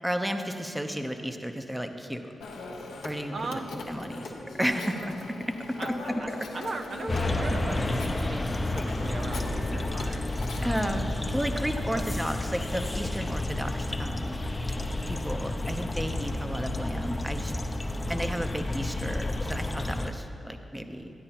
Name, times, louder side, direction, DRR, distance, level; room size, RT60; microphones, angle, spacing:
voice 1, 0.0-2.3 3.0-3.6 3.9-4.3 4.6-5.9 6.3-6.5 8.1-8.2 10.6-14.4 15.1-17.5 18.1-21.1, equal, 10° right, 6 dB, 0.8 m, -33 dB
Telephone, 2.4-11.5, left 2 dB, 85° left, 0.9 m, -41 dB
voice 2, 3.3-3.7 5.8-6.3 6.5-10.3 10.6-11.0 11.9-12.0 18.0-18.3, right 3 dB, 60° right, 5 dB, 0.5 m, -38 dB
sound 1, 7.1-20.1, left 2 dB, 30° left, 0.6 m, -31 dB
12.5 x 9.6 x 2.9 m, 2.6 s
supercardioid pair, 45°, 0 cm